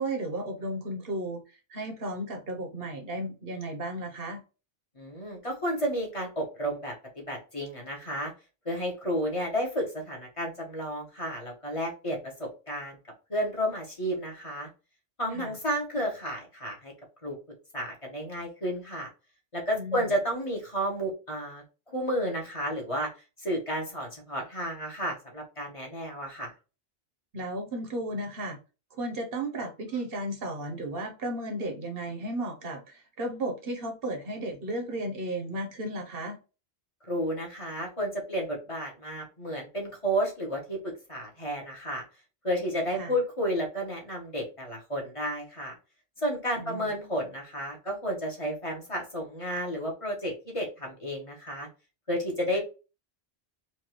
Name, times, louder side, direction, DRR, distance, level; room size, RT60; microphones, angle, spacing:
voice 1, 0.0-4.4 15.3-15.5 19.7-20.0 27.3-28.6 28.9-36.4 42.9-43.1 46.6-46.9, right 1 dB, 65° right, 1.1 m, -34 dB
voice 2, 4.9-6.9 7.3-8.3 8.6-13.0 13.3-14.7 15.2-16.9 17.2-17.4 17.7-19.1 19.5-23.1 23.4-26.5 37.0-42.0 42.4-45.7 46.2-51.7 52.1-52.6, equal, 30° left, 1.3 m, -32 dB
4.5 x 2.6 x 3.0 m
omnidirectional pair, 1.1 m